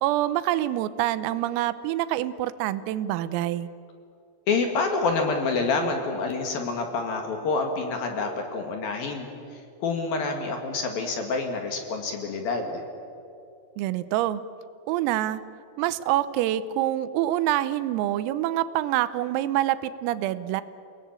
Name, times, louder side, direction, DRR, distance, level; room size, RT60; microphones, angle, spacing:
voice 1, 0.0-3.7 13.8-14.4 14.9-15.4 15.8-20.6, right 13 dB, 90° right, 14 dB, 3.5 m, -26 dB
voice 2, 4.5-12.8, left 4 dB, 55° left, 4 dB, 3.1 m, -27 dB
29.0 x 18.5 x 8.9 m, 2.6 s
omnidirectional pair, 5.9 m